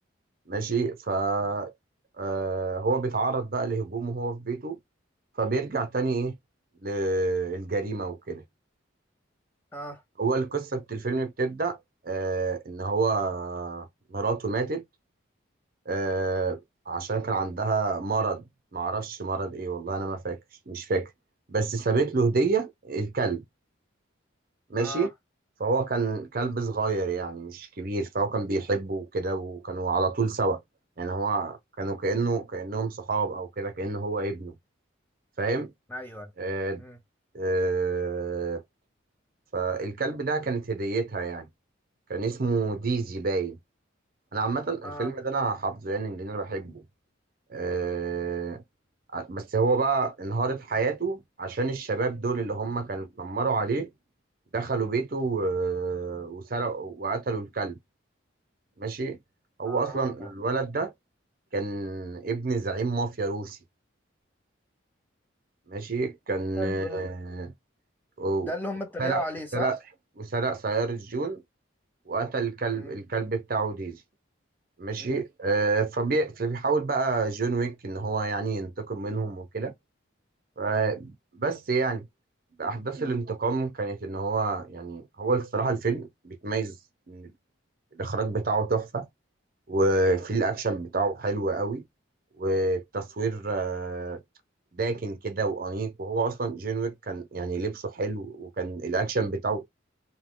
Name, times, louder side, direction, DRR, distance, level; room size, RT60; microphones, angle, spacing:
voice 1, 0.5-1.7 2.2-4.8 5.4-6.4 6.8-8.4 10.2-11.8 12.0-14.8 15.9-16.6 16.9-18.5 18.7-20.4 20.7-21.1 21.5-23.4 24.7-25.1 25.6-30.6 31.0-34.5 35.4-35.7 36.4-36.8 37.3-38.6 39.5-41.5 42.1-43.6 44.3-46.8 47.5-48.6 49.1-53.9 54.5-57.8 58.8-59.2 59.6-60.9 61.5-63.6 65.7-67.5 68.2-68.5 69.0-69.2 69.5-69.8 70.2-71.4 72.1-74.0 74.8-79.7 80.6-82.1 82.6-86.8 87.1-87.3 87.9-89.1 89.7-91.9 92.4-94.2 94.7-99.6, right 3 dB, 45° right, 0.6 m, -28 dB
voice 2, 24.8-25.1 35.9-36.3 36.8-37.0 44.8-45.1 59.7-60.3 66.6-67.1 68.4-69.8 72.7-73.0 75.0-75.2, left 1 dB, 10° left, 0.6 m, -35 dB
2.8 x 2.1 x 3.7 m
head